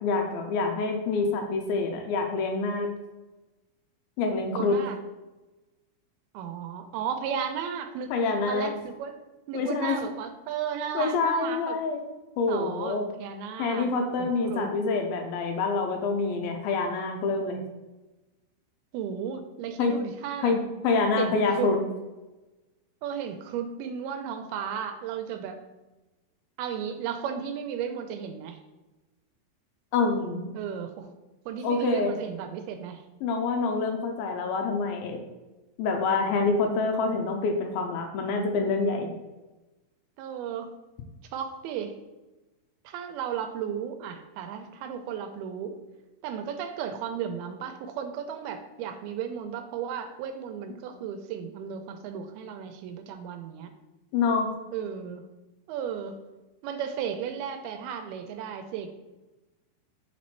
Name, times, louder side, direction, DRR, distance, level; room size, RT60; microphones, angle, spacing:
voice 1, 0.0-2.9 4.2-4.8 8.1-8.7 9.5-10.0 10.9-12.0 12.4-13.1 13.6-17.6 19.8-20.0 20.4-21.8 29.9-30.5 31.6-32.1 33.2-35.2 35.8-39.1 54.1-54.5, left 4 dB, 80° left, 4 dB, 2.3 m, -26 dB
voice 2, 4.5-5.0 6.3-8.1 8.5-9.1 9.5-11.8 12.5-13.9 14.2-14.7 18.9-20.6 21.2-21.7 23.0-25.6 26.6-28.6 30.5-31.1 31.5-33.0 40.2-40.7 41.3-42.0 42.9-45.8 46.2-53.7 54.7-55.3 55.7-56.2 56.6-58.9, right 8 dB, 80° right, 7 dB, 2.4 m, -34 dB
6.0 x 4.1 x 4.3 m, 1.1 s
omnidirectional pair, 4.6 m